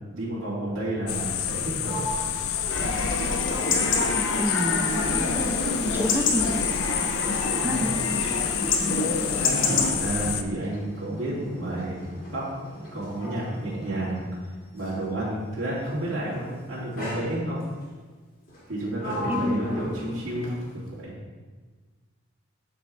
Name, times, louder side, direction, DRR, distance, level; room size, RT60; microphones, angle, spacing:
voice 1, 0.1-2.0 7.4-7.9 9.2-12.0 12.3-12.5 12.7-14.2 14.7-17.6 18.7-21.1, right 1 dB, 65° right, -8 dB, 2.8 m, -31 dB
sound 1, 1.1-10.4, left 9 dB, 90° left, 0.5 m, -28 dB
Sliding door, 1.4-4.7 5.0-15.1 16.0-16.3 17.0-17.9 18.5-21.0, left 1 dB, 45° left, 2.2 m, -40 dB
Chatter / Livestock farm animals working animals / Chirp tweet, 2.7-9.9, left 3 dB, 65° left, 1.1 m, -27 dB
voice 2, 4.3-5.3 5.9-6.6 7.5-7.9 8.8-8.9 19.3-20.3, equal, 10° right, 3 dB, 0.5 m, -29 dB
13.5 x 5.0 x 3.4 m, 1.4 s
head